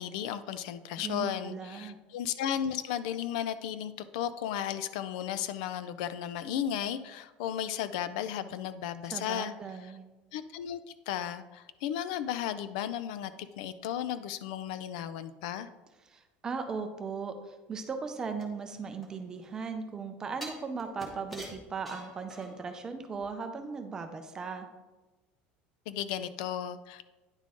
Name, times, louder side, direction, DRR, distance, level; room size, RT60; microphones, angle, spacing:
voice 1, 0.0-9.5 9.8-9.9 10.3-10.8 11.1-13.3 13.6-15.7 25.9-27.0, left 10 dB, 85° left, 13 dB, 0.4 m, -34 dB
voice 2, 1.0-2.0 9.1-10.0 16.1-24.7, right 5 dB, 15° right, 7 dB, 0.5 m, -38 dB
sound 1, 18.4-19.6 20.4-22.8 23.1-23.2, right 1 dB, ahead, 1.0 m, -46 dB
9.7 x 3.7 x 3.7 m, 1.2 s
cardioid pair, 175°, 4 cm